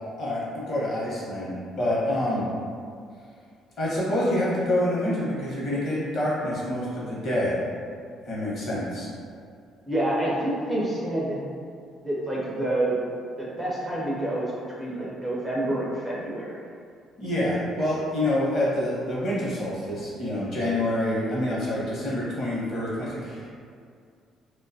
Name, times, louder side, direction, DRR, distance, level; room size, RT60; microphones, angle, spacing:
voice 1, 0.2-2.5 3.8-7.6 8.2-9.1 17.2-23.5, left 1 dB, 50° left, -7 dB, 0.8 m, -27 dB
voice 2, 9.9-11.4 12.0-13.0 13.4-14.5 14.8-16.6, right 1 dB, 10° right, -6 dB, 0.4 m, -27 dB
2.5 x 2.2 x 2.5 m, 2.3 s
cardioid pair, 150°, 0 cm